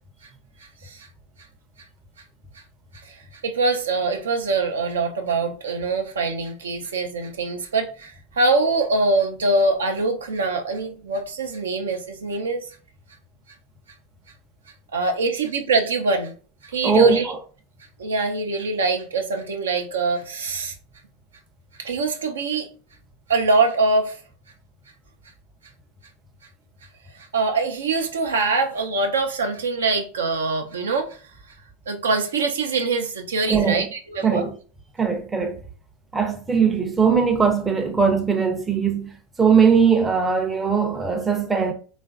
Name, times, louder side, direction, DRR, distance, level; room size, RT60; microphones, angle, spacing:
voice 1, 3.0-12.7 14.9-16.3 16.6-17.3 18.0-20.7 21.8-22.7 23.3-24.2 27.1-31.2 31.9-34.5, right 3 dB, 90° right, 0.4 m, -23 dB
voice 2, 16.8-17.4 33.5-33.8 34.2-34.5 35.0-35.6 36.1-39.1 39.4-41.7, right 6 dB, 15° right, 0.4 m, -20 dB
3.0 x 2.4 x 2.3 m
hypercardioid pair, 100°, 0 cm